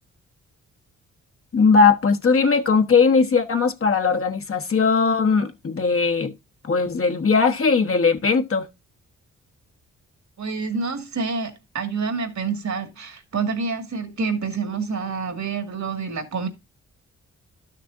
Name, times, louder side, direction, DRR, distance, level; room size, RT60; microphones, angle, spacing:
voice 1, 1.5-6.3 6.6-8.7, left 5 dB, 45° left, 1.3 m, -19 dB
voice 2, 10.4-16.5, right 4 dB, 60° right, 2.1 m, -27 dB
12.0 x 6.6 x 2.6 m
supercardioid pair, 55°, 32 cm